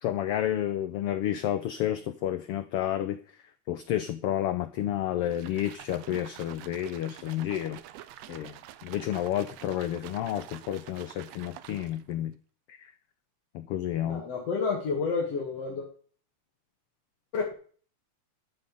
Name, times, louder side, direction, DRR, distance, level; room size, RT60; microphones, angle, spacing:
voice 1, 0.0-3.2 3.7-7.8 8.3-8.5 8.8-12.4 12.7-12.9 13.5-14.2, left 11 dB, 90° left, 10 dB, 1.3 m, -30 dB
sound 1, 5.2-12.1, right 12 dB, 75° right, 1.7 m, -47 dB
voice 2, 14.0-15.9 17.3-17.5, left 4 dB, 60° left, -2 dB, 2.9 m, -30 dB
13.0 x 5.8 x 6.9 m, 0.43 s
omnidirectional pair, 3.4 m